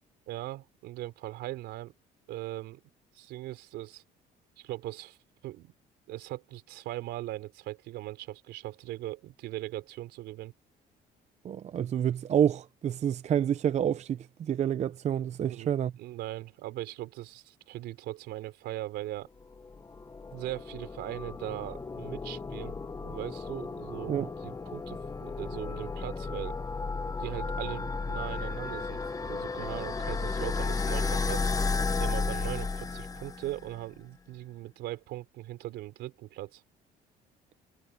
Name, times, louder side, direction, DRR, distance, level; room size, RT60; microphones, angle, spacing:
voice 1, 0.3-1.9 2.3-2.8 3.1-4.0 4.6-5.2 5.4-5.7 6.1-10.5 15.5-19.3 20.3-26.6 27.2-31.5 32.0-36.6, right 16 dB, 85° right, 3.7 m, -39 dB
voice 2, 11.4-15.9 24.1-24.3, right 9 dB, 40° right, 0.6 m, -28 dB
sound 1, 19.5-33.7, left 4 dB, 20° left, 1.1 m, -33 dB
cardioid pair, 110°, 17 cm